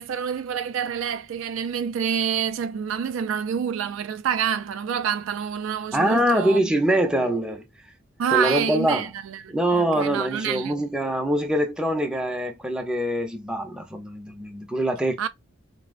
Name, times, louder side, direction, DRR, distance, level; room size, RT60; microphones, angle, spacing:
voice 1, 0.0-6.7 8.2-10.8 15.2-15.3, right 8 dB, 70° right, 0.3 m, -27 dB
voice 2, 5.9-7.6 8.3-9.0 9.5-15.3, right 1 dB, 5° right, 0.5 m, -24 dB
4.0 x 2.0 x 2.4 m
head